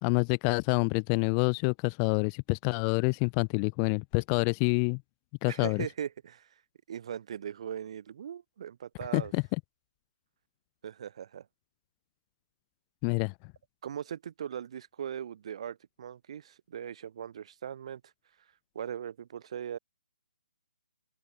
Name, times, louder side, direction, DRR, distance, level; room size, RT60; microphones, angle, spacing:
voice 1, 0.0-5.0 5.4-5.9 9.1-9.4 13.0-13.3, left 40 dB or more, 20° left, 0.4 m, -27 dB
voice 2, 5.5-6.5 6.9-9.3 10.8-11.4 13.8-18.0 18.7-19.8, right 9 dB, 45° right, 1.7 m, -39 dB
hypercardioid pair, 160°, 4 cm